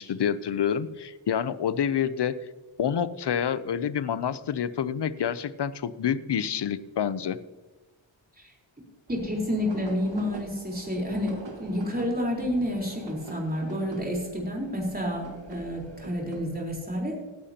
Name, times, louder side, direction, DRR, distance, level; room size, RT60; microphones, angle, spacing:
voice 1, 0.0-2.4 2.8-7.4, left 8 dB, 60° left, 16 dB, 0.6 m, -28 dB
voice 2, 9.1-17.2, equal, 20° right, -2 dB, 4.0 m, -29 dB
sound 1, 9.1-16.8, right 2 dB, 65° right, 1.9 m, -45 dB
16.5 x 10.5 x 2.9 m, 1.2 s
wide cardioid pair, 90°, 48 cm